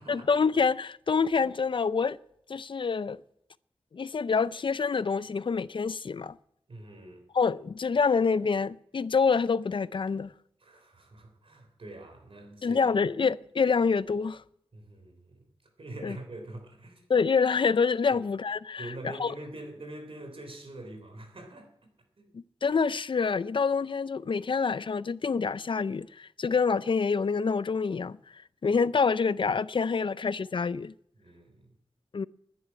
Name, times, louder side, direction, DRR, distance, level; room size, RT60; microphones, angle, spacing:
voice 1, 0.1-2.2 2.5-3.2 3.9-6.4 7.3-10.3 12.6-14.4 16.0-16.2 17.1-19.3 22.3-28.2 28.6-30.9 32.1-32.3, left 5 dB, 55° left, 0.5 m, -26 dB
voice 2, 6.7-7.2 10.6-13.1 14.7-15.5 15.8-17.0 18.1-18.2 18.8-21.9 22.2-22.3 31.2-31.7, right 1 dB, 60° right, 3.7 m, -44 dB
11.0 x 10.5 x 9.7 m
wide cardioid pair, 90°, 10 cm